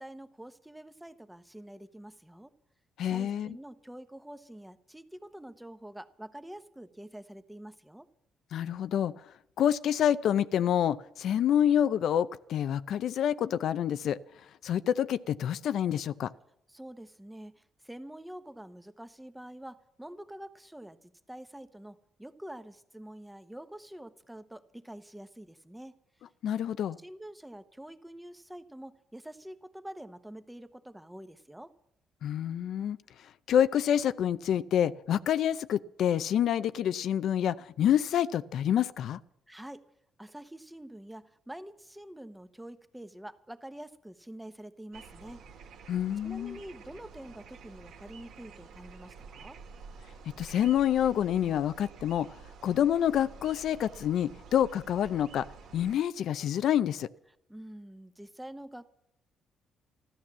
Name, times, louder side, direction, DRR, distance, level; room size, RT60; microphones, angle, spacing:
voice 1, 0.0-2.5 3.1-8.1 16.7-25.9 27.0-31.7 39.5-39.8 40.2-45.4 46.2-49.6 57.5-58.9, right 1 dB, 5° right, 10 dB, 1.1 m, -46 dB
voice 2, 3.0-3.6 8.5-9.1 9.6-14.2 14.6-16.3 26.4-27.0 32.2-33.0 33.5-39.2 45.9-46.6 50.4-52.3 52.6-55.5 55.7-57.1, left 10 dB, 70° left, 14 dB, 0.5 m, -27 dB
sound 1, 44.9-56.0, right 5 dB, 80° right, 2.0 m, -50 dB
14.0 x 13.0 x 7.3 m, 0.77 s
cardioid pair, 90°, 0 cm